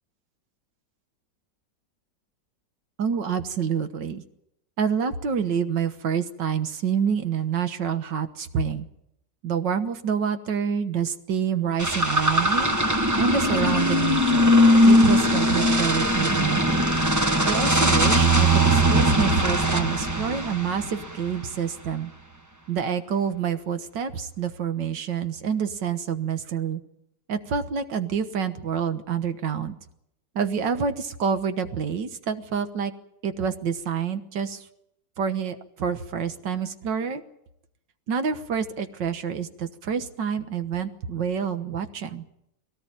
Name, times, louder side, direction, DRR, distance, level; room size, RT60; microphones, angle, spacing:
voice 1, 3.0-4.2 4.8-8.9 9.4-12.7 13.1-14.5 14.8-16.9 17.5-22.1 22.7-26.8 27.3-29.8 30.4-32.9 33.2-34.7 35.2-37.2 38.1-42.2, right 7 dB, 80° right, 9 dB, 1.9 m, -27 dB
sound 1, 11.8-21.3, equal, 10° right, 1.2 m, -20 dB
22.0 x 18.0 x 8.8 m, 0.80 s
omnidirectional pair, 2.0 m